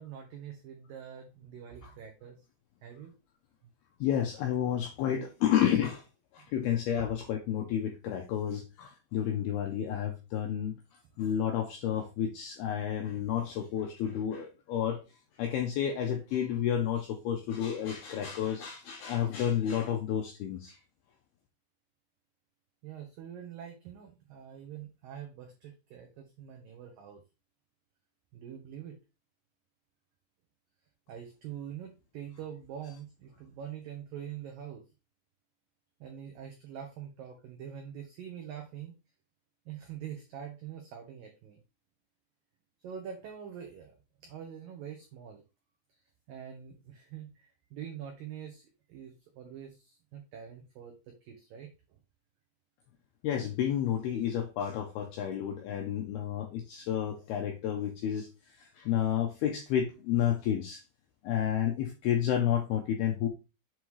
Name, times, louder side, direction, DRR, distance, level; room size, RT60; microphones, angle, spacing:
voice 1, 0.0-2.4 2.8-3.1 6.4-6.5 7.0-7.1 22.8-27.2 28.3-29.0 31.1-34.8 36.0-38.9 39.7-41.6 42.8-44.0 44.2-45.4 46.3-51.7, right 9 dB, 90° right, 3 dB, 1.9 m, -44 dB
voice 2, 4.0-6.0 6.3-10.7 11.2-15.0 15.4-20.8 53.2-60.8 61.2-63.3, left 10 dB, 80° left, 3 dB, 2.2 m, -31 dB
7.8 x 3.6 x 4.7 m, 0.28 s
omnidirectional pair, 5.6 m